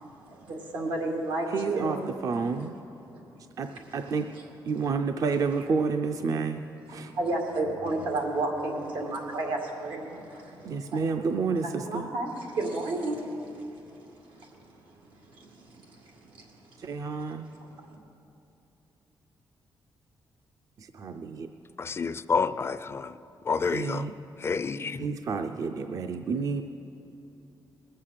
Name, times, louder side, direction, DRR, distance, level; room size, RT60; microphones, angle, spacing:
voice 1, 0.3-2.0 3.1-3.4 7.1-11.3 11.6-13.8 14.4-14.5 15.3-16.0 16.3-16.5 17.6-18.0, right 2 dB, 90° right, 1 dB, 2.3 m, -32 dB
voice 2, 1.5-2.7 3.6-4.3 4.6-6.6 6.9-7.1 10.6-12.1 16.8-17.5 20.8-21.5 23.7-24.1 24.9-26.6, right 4 dB, 45° right, 7 dB, 0.4 m, -30 dB
voice 3, 21.8-23.1 23.4-24.1 24.4-25.1, left 5 dB, 30° left, 14 dB, 0.3 m, -29 dB
20.5 x 7.5 x 6.5 m, 2.8 s
cardioid pair, 135°, 8 cm